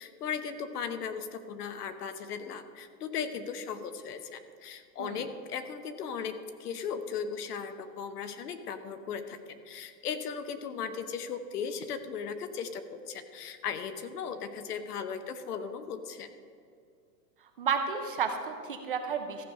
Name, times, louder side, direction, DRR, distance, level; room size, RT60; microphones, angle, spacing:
voice 1, 0.0-16.3, left 6 dB, 65° left, 9 dB, 1.1 m, -37 dB
voice 2, 17.6-19.4, right 6 dB, 35° right, 5 dB, 0.5 m, -32 dB
14.5 x 4.8 x 6.5 m, 2.3 s
supercardioid pair, 170°, 50 cm